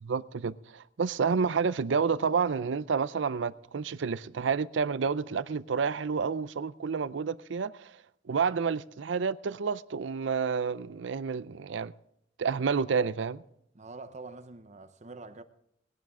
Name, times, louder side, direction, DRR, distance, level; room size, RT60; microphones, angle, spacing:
voice 1, 0.0-11.9 12.4-13.4, right 5 dB, 80° right, 0.5 m, -29 dB
voice 2, 13.7-15.4, right 3 dB, 40° right, 0.8 m, -45 dB
19.0 x 10.5 x 3.7 m
head